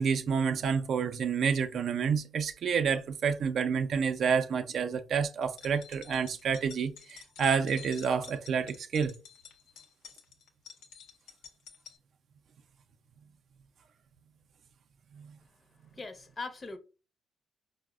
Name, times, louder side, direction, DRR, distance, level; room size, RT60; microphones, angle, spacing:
voice 1, 0.0-9.1 15.1-15.3, right 6 dB, 65° right, 0.3 m, -29 dB
sound 1, 5.4-12.0, left 7 dB, 80° left, 0.5 m, -51 dB
voice 2, 15.4-16.8, left 3 dB, 35° left, 0.6 m, -42 dB
4.5 x 2.0 x 2.3 m
supercardioid pair, 55°, 0 cm